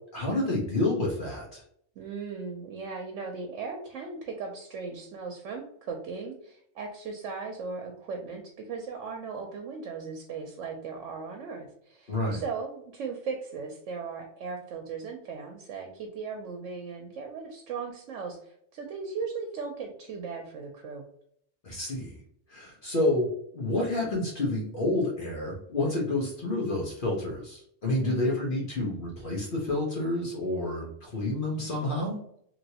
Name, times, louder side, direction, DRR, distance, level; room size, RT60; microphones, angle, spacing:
voice 1, 0.1-1.6 12.1-12.4 21.6-22.2 22.5-23.3 23.5-32.2, left 2 dB, 50° left, -2 dB, 1.0 m, -29 dB
voice 2, 2.0-21.0 27.9-28.3, right 5 dB, 90° right, 2 dB, 1.0 m, -37 dB
3.0 x 2.8 x 2.8 m, 0.67 s
omnidirectional pair, 1.2 m